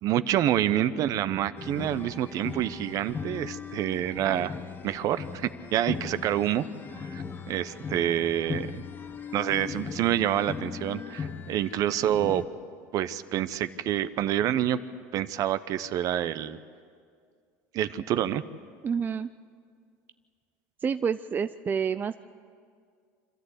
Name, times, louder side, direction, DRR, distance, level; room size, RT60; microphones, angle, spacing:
voice 1, 0.0-4.5 4.8-6.6 7.0-8.8 9.3-12.4 12.9-14.8 15.1-16.6 17.7-18.4, right 11 dB, 55° right, 14 dB, 0.8 m, -27 dB
sound 1, 1.6-12.4, left 6 dB, 25° left, 1.2 m, -38 dB
voice 2, 18.8-19.3 20.8-22.2, right 6 dB, 25° right, 11 dB, 0.4 m, -28 dB
26.0 x 13.5 x 8.1 m, 2.1 s
supercardioid pair, 100°, 7 cm